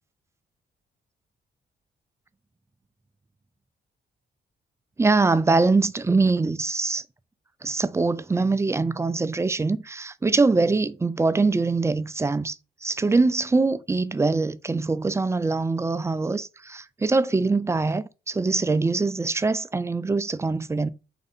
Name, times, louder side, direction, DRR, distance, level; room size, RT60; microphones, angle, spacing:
voice 1, 5.0-7.0 7.6-12.6 12.8-20.9, right 3 dB, 15° right, 0.3 m, -23 dB
3.6 x 2.6 x 4.1 m
cardioid pair, 70°, 19 cm